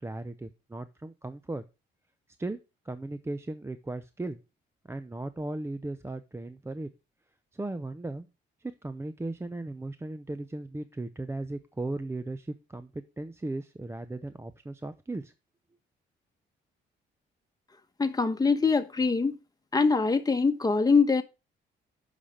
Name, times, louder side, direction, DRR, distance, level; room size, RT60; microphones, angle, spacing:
voice 1, 0.0-1.6 2.4-2.6 2.8-4.4 4.9-6.9 7.5-8.3 8.6-15.3, right 2 dB, 15° right, 0.6 m, -37 dB
voice 2, 18.0-19.4 19.7-21.2, left 4 dB, 20° left, 1.2 m, -23 dB
8.2 x 5.8 x 4.9 m
cardioid pair, 90°, 20 cm